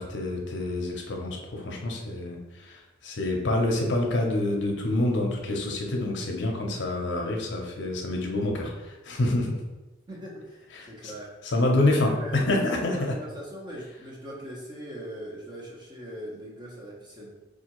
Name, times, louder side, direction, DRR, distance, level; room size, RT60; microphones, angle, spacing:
voice 1, 0.0-9.6 10.8-11.1 11.4-13.1, left 2 dB, 65° left, 1 dB, 0.6 m, -27 dB
voice 2, 10.1-11.3 11.8-17.3, equal, 25° right, -3 dB, 0.8 m, -40 dB
4.7 x 2.4 x 3.0 m, 1.1 s
head